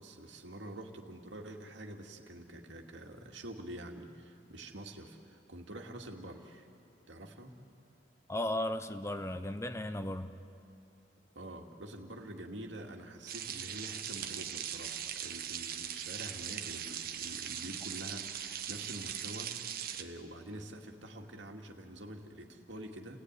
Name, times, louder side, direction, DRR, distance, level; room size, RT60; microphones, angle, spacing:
voice 1, 0.0-6.7 7.1-7.6 11.3-23.2, right 1 dB, 75° right, 3 dB, 2.4 m, -47 dB
voice 2, 8.3-10.3, left 1 dB, 15° left, 8 dB, 0.7 m, -35 dB
sound 1, 13.3-20.0, right 9 dB, 50° right, 1.3 m, -40 dB
29.5 x 18.5 x 9.8 m, 2.6 s
head